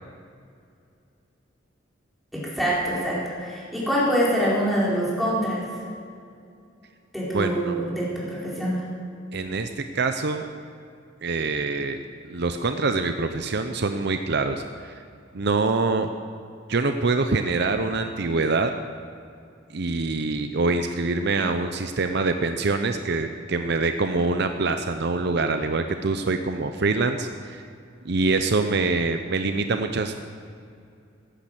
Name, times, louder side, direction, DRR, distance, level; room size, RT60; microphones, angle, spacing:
voice 1, 2.3-5.6 7.1-8.9, equal, ahead, -7 dB, 4.6 m, -25 dB
voice 2, 7.3-7.8 9.3-10.5 11.2-12.0 12.3-15.0 15.3-16.1 16.7-18.7 19.7-27.6 28.0-30.2, right 3 dB, 55° right, 7 dB, 0.7 m, -25 dB
15.5 x 10.5 x 7.8 m, 2.5 s
head